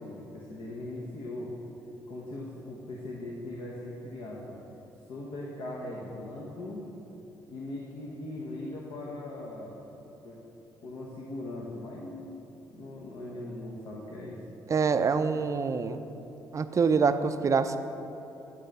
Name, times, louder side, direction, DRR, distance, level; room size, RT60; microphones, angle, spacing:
voice 1, 0.0-1.5 2.1-4.6 5.1-6.8 7.5-9.8 10.2-10.4 10.8-12.3 12.6-14.4, left 1 dB, 70° left, -3 dB, 1.2 m, -40 dB
voice 2, 14.7-16.0 16.5-17.8, right 5 dB, 40° right, 10 dB, 0.5 m, -25 dB
9.9 x 3.8 x 6.7 m, 3.0 s
supercardioid pair, 60°, 8 cm